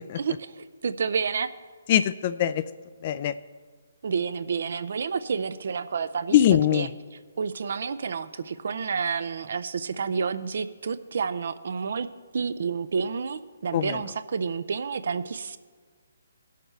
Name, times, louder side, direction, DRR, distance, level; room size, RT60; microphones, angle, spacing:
voice 1, 0.2-1.5 4.0-6.4 6.7-6.9 7.4-12.1 12.3-15.6, right 5 dB, 65° right, 14 dB, 0.5 m, -29 dB
voice 2, 1.9-2.6 3.0-3.4 6.3-6.9 13.7-14.0, left 11 dB, 40° left, 14 dB, 0.3 m, -22 dB
18.0 x 6.6 x 3.3 m, 1.5 s
hypercardioid pair, 150°, 0 cm